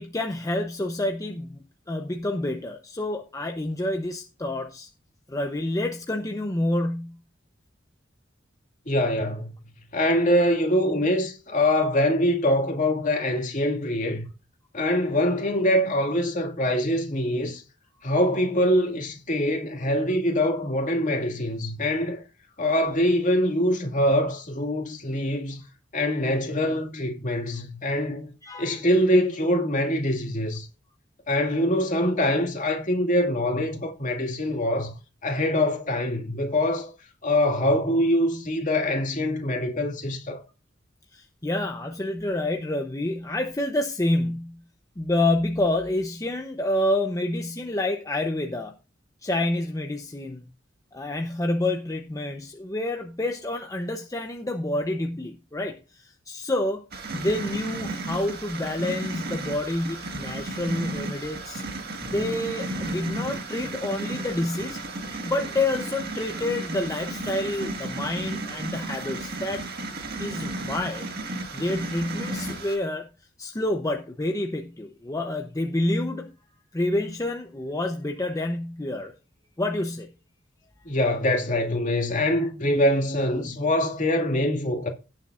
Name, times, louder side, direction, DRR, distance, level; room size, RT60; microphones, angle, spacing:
voice 1, 0.0-1.6 1.9-4.9 5.3-7.2 28.4-28.8 41.1-44.6 45.0-48.8 49.2-50.5 50.9-56.8 57.1-61.6 62.1-64.8 65.2-69.6 70.2-71.1 71.5-73.1 73.4-76.3 76.7-79.1 79.6-80.1, left 1 dB, 20° left, 0.7 m, -28 dB
voice 2, 8.9-9.5 9.9-14.3 14.7-17.6 18.0-22.2 22.6-25.6 25.9-28.3 28.6-30.7 31.3-34.9 35.2-36.9 37.2-40.4 80.8-84.9, left 1 dB, 40° left, 2.2 m, -24 dB
sound 1, 56.9-72.8, right 2 dB, 55° right, 1.8 m, -34 dB
17.5 x 7.1 x 2.5 m
head